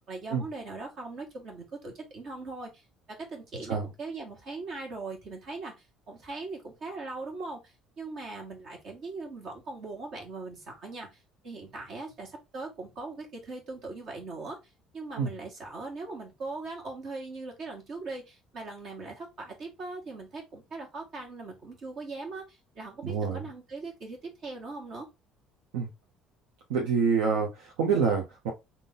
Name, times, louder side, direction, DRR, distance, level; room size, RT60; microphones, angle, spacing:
voice 1, 0.1-2.8 3.1-5.7 6.1-11.1 11.4-14.6 14.9-25.1, right 3 dB, 55° right, 1.6 m, -40 dB
voice 2, 23.0-23.4 25.7-25.9 26.7-28.5, right 5 dB, 70° right, 0.8 m, -27 dB
3.7 x 2.8 x 3.7 m
figure-of-eight pair, 55°, 0 cm